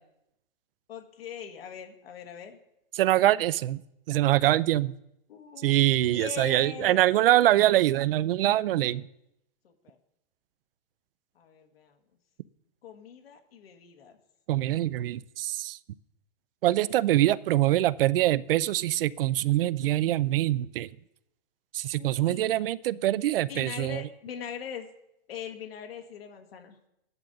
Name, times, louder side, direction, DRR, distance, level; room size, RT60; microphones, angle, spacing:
voice 1, 0.9-2.6 5.3-7.0 9.6-10.0 11.3-12.0 12.8-14.2 22.0-22.4 23.4-24.9 25.3-26.8, left 8 dB, 85° left, 3 dB, 1.7 m, -41 dB
voice 2, 2.9-3.8 4.1-4.9 5.6-9.1 14.5-15.8 16.6-20.9 21.7-24.0, right 14 dB, 70° right, 20 dB, 0.5 m, -24 dB
13.5 x 10.5 x 3.9 m, 0.83 s
hypercardioid pair, 145°, 29 cm